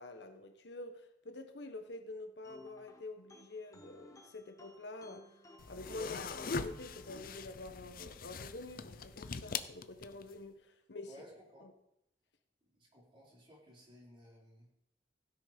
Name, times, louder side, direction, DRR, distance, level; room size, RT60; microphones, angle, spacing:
voice 1, 0.0-5.3 5.7-11.1 11.6-11.7, left 2 dB, 75° left, 1.2 m, -47 dB
sound 1, 2.4-7.5, left 1 dB, 20° left, 1.0 m, -57 dB
sound 2, 5.6-10.4, left 5 dB, 55° left, 0.6 m, -42 dB
voice 2, 11.1-11.7 12.6-14.7, equal, 30° right, 4.0 m, -58 dB
16.5 x 6.2 x 5.2 m
head